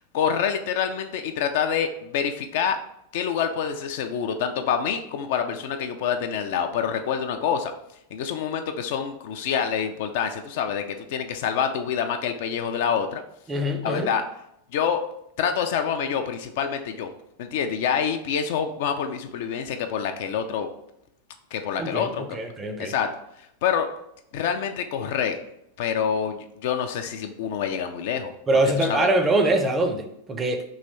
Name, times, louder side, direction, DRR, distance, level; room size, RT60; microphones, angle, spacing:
voice 1, 0.1-2.8 3.1-7.7 8.1-13.2 13.8-14.2 14.7-15.0 15.4-17.1 17.4-20.7 21.5-22.2 22.8-23.1 23.6-23.9 24.3-25.4 25.8-28.3 28.8-29.1, left 7 dB, 50° left, 6 dB, 0.4 m, -26 dB
voice 2, 13.5-14.1 21.8-22.9 28.5-30.6, right 1 dB, 20° right, 6 dB, 0.5 m, -23 dB
3.2 x 2.9 x 4.0 m, 0.77 s
figure-of-eight pair, 90°, 0 cm